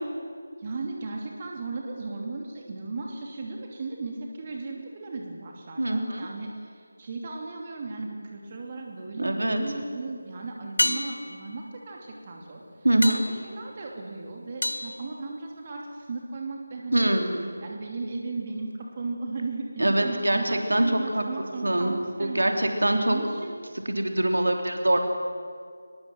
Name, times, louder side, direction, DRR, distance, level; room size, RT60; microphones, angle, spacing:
voice 1, 0.6-12.6 13.0-17.1 17.6-22.6 23.1-23.6, right 3 dB, 30° right, 1 dB, 2.8 m, -36 dB
voice 2, 5.8-6.3 9.2-9.6 12.8-13.2 16.9-17.5 19.8-21.2 21.6-21.9 22.2-23.2 23.8-25.0, right 1 dB, 75° right, 4 dB, 3.4 m, -24 dB
sound 1, 8.5-9.1 10.8-15.9 20.4-20.5, left 1 dB, 75° left, 1.0 m, -32 dB
23.5 x 21.0 x 7.7 m, 2.1 s
figure-of-eight pair, 160°, 0 cm